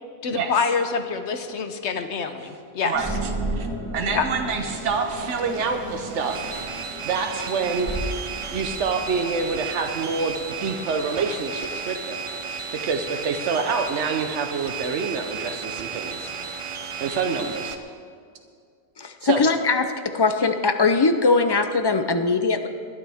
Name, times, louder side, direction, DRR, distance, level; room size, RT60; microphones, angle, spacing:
voice 1, 0.2-2.9 4.1-4.2, left 5 dB, 75° left, 7 dB, 1.1 m, -26 dB
voice 2, 2.8-3.7 3.9-8.0 8.5-10.3 10.6-12.2 12.5-16.3 17.0-17.8 19.2-19.5, right 5 dB, 85° right, 5 dB, 1.1 m, -27 dB
sound 1, 2.9-10.9, right 2 dB, 10° right, 3.1 m, -34 dB
sound 2, 4.6-17.8, right 5 dB, 35° right, 0.6 m, -34 dB
voice 3, 19.0-22.7, left 4 dB, 30° left, 8 dB, 0.5 m, -21 dB
21.0 x 11.5 x 3.5 m, 2.3 s
omnidirectional pair, 1.2 m